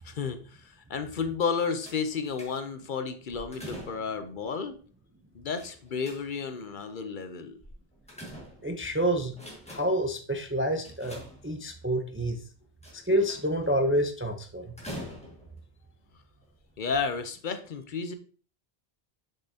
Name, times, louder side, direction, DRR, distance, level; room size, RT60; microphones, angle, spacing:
voice 1, 0.0-4.8 5.3-7.6 16.8-18.1, left 5 dB, 55° left, 9 dB, 0.7 m, -32 dB
sound 1, 1.8-2.9 3.3-4.3 5.6-6.6 7.6-8.9 9.3-10.1 10.8-11.8 12.8-13.6 14.8-15.6 16.4-16.6 16.9-17.0, equal, 5° left, 1.7 m, -44 dB
voice 2, 8.6-9.3 9.7-12.4 13.1-14.7, right 1 dB, 20° right, 5 dB, 0.4 m, -28 dB
6.7 x 5.5 x 2.7 m, 0.40 s
omnidirectional pair, 1.1 m